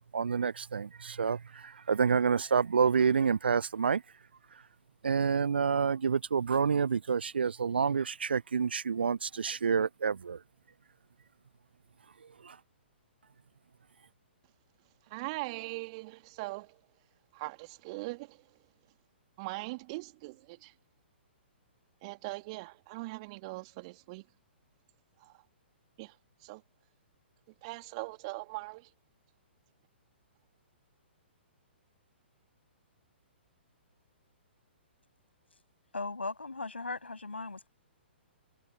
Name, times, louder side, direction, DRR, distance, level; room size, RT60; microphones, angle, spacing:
voice 1, 0.1-4.0 5.0-10.4 12.4-12.6, right 6 dB, 65° right, 0.4 m, -28 dB
voice 2, 15.1-16.8 17.3-18.4 19.4-20.7 22.0-24.3 25.2-25.3 26.0-26.1 26.4-26.6 27.6-28.9, right 24 dB, 35° right, 2.6 m, -41 dB
voice 3, 35.9-37.7, left 3 dB, 75° left, 7.1 m, -38 dB
figure-of-eight pair, 120°, 6 cm